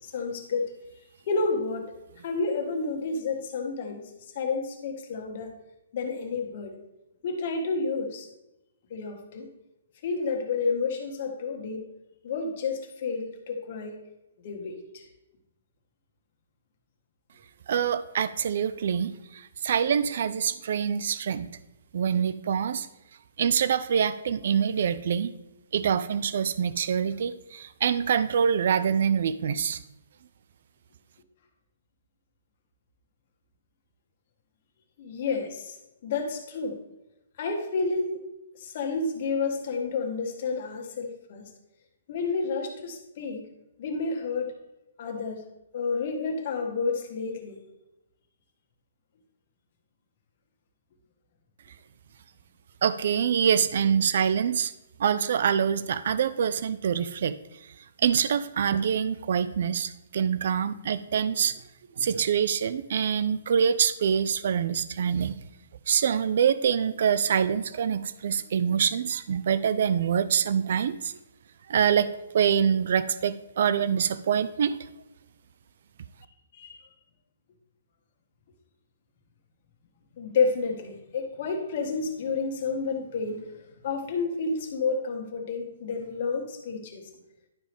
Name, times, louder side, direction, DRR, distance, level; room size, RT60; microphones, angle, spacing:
voice 1, 0.1-0.7 1.3-1.9 2.2-4.0 4.3-5.5 5.9-6.7 7.2-8.3 8.9-9.5 10.0-11.8 12.2-14.0 14.4-15.0 35.0-35.7 36.0-36.8 37.4-38.2 38.6-41.4 42.1-43.4 43.8-44.5 45.0-45.4 45.7-47.6 76.6-76.8 80.2-83.5 83.8-87.0, left 4 dB, 45° left, 2 dB, 1.6 m, -30 dB
voice 2, 17.7-21.5 21.9-22.9 23.4-25.3 25.7-29.8 52.8-54.7 55.0-57.3 58.0-61.6 62.0-65.3 65.9-71.2 71.7-72.1 72.3-74.8, right 7 dB, 60° right, 14 dB, 0.4 m, -25 dB
11.5 x 4.9 x 3.5 m, 0.92 s
hypercardioid pair, 160°, 0 cm